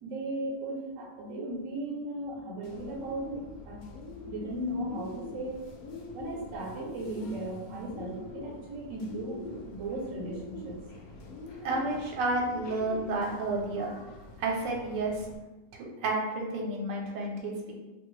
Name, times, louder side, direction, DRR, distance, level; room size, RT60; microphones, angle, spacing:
voice 1, 0.0-3.8 4.3-5.6 6.1-10.8, right 1 dB, 60° right, -2 dB, 0.9 m, -36 dB
Bird, 2.6-15.4, left 2 dB, 70° left, 0.9 m, -44 dB
voice 2, 11.6-13.9 14.4-15.3 15.8-17.8, right 2 dB, 80° right, -1 dB, 1.3 m, -31 dB
2.9 x 2.4 x 3.0 m, 1.1 s
omnidirectional pair, 1.9 m